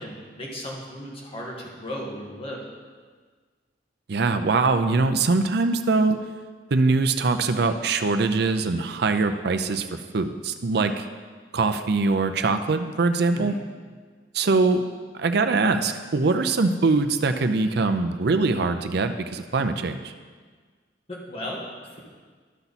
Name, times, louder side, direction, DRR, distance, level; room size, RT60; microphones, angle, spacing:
voice 1, 0.0-2.7 13.3-13.6 21.1-22.0, equal, 35° left, -3 dB, 1.7 m, -36 dB
voice 2, 4.1-6.2 6.7-11.0 11.5-13.5 14.3-14.8 15.2-20.1, right 3 dB, 65° right, 8 dB, 0.5 m, -22 dB
12.0 x 5.7 x 4.1 m, 1.5 s
head